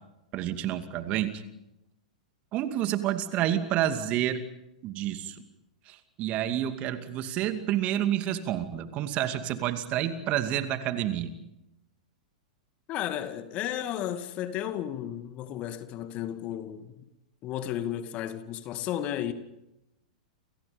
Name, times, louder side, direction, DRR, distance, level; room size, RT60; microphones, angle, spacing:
voice 1, 0.3-1.4 2.5-4.4 4.8-5.4 5.9-11.3, right 11 dB, 35° right, 2.5 m, -29 dB
voice 2, 12.9-17.1 17.4-19.3, left 11 dB, 35° left, 2.4 m, -33 dB
29.5 x 29.0 x 5.4 m
figure-of-eight pair, 100°, 4 cm